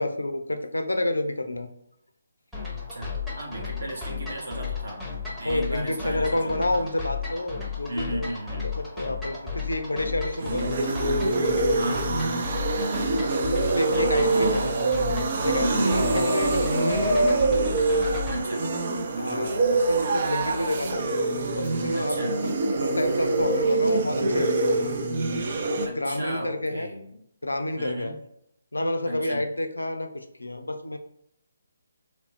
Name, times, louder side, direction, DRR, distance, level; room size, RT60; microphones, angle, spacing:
voice 1, 0.0-1.7 5.4-8.3 8.6-10.7 13.5-14.7 15.4-17.3 19.2-21.0 21.5-22.5 22.8-25.0 25.7-28.2 28.7-31.0, left 1 dB, 85° left, 7 dB, 0.4 m, -29 dB
sound 1, 2.5-18.4, left 5 dB, 5° right, 0.7 m, -34 dB
voice 2, 2.9-5.1 5.4-6.9 7.9-8.7 11.8-12.1 13.9-14.6 15.6-16.0 18.3-18.7 21.9-22.4 25.8-27.1 27.8-28.1 29.0-29.5, right 1 dB, 70° right, 0 dB, 0.9 m, -34 dB
sound 2, 10.2-25.9, right 3 dB, 45° right, 0.4 m, -25 dB
3.0 x 2.0 x 2.9 m, 0.73 s
figure-of-eight pair, 145°, 0 cm